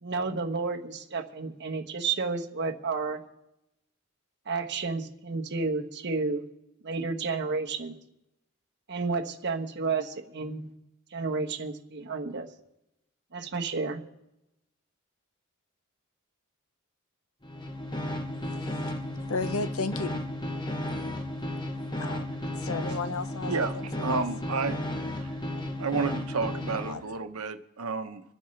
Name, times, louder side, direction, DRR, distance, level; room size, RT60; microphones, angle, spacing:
voice 1, 0.0-3.2 4.5-6.4 6.8-8.0 8.9-10.7 11.1-12.5 13.3-14.0, right 4 dB, 55° right, 1.2 m, -31 dB
sound 1, 17.4-27.0, left 1 dB, 20° left, 1.0 m, -34 dB
voice 2, 19.3-20.2 22.0-22.3 22.6-24.2 26.9-27.0, left 3 dB, 70° left, 0.7 m, -33 dB
voice 3, 24.0-25.3 25.8-28.2, right 4 dB, 85° right, 1.0 m, -31 dB
26.5 x 9.7 x 3.3 m
head